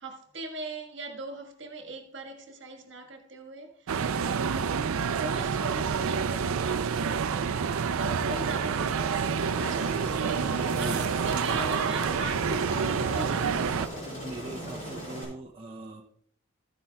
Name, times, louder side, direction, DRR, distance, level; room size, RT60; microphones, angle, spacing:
voice 1, 0.0-4.6 5.1-7.7 8.0-14.1, right 2 dB, 55° right, 1.6 m, -39 dB
sound 1, 3.9-13.9, right 6 dB, 80° right, 0.4 m, -28 dB
Aircraft, 9.4-15.2, equal, 40° left, 4.7 m, -38 dB
voice 2, 14.1-16.0, right 2 dB, 25° right, 0.6 m, -40 dB
13.5 x 9.8 x 2.3 m
head